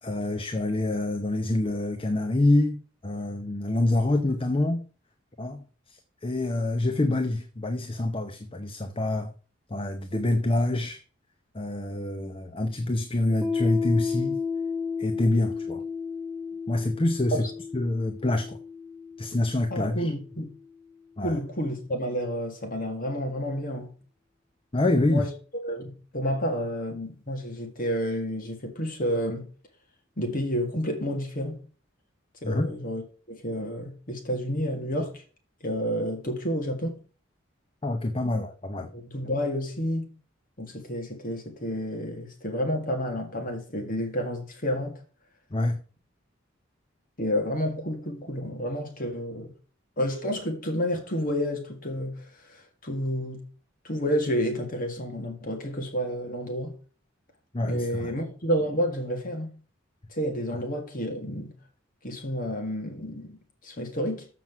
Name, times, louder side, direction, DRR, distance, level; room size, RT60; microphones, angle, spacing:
voice 1, 0.0-2.8 3.0-4.8 5.4-9.3 9.7-11.0 11.5-14.4 15.0-15.8 16.7-17.4 17.7-18.6 19.2-20.1 21.2-21.4 24.7-25.3 32.4-32.7 37.8-38.9 45.5-45.8 57.5-58.1, left 2 dB, 25° left, 0.7 m, -26 dB
Piano, 13.4-20.7, left 5 dB, 15° right, 1.0 m, -33 dB
voice 2, 19.7-20.5 21.2-23.9 24.7-25.3 25.6-29.5 30.2-31.6 32.4-35.2 35.6-37.0 38.2-38.4 38.8-40.2 40.6-45.0 47.2-49.5 50.0-53.4 53.8-56.7 57.6-59.6 60.1-61.5 62.0-64.3, equal, 45° left, 1.9 m, -30 dB
7.5 x 6.0 x 5.9 m
head